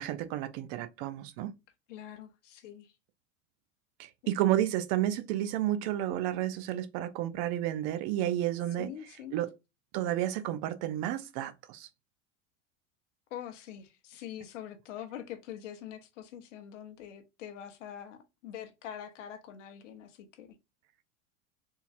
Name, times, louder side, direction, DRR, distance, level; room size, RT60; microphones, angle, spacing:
voice 1, 0.0-1.6 4.0-8.9 9.3-9.5 9.9-11.9, right 12 dB, 55° right, 0.6 m, -31 dB
voice 2, 1.9-2.9 4.2-4.3 8.8-9.3 13.3-20.5, left 10 dB, 70° left, 0.9 m, -44 dB
3.7 x 2.8 x 2.6 m
hypercardioid pair, 85°, 38 cm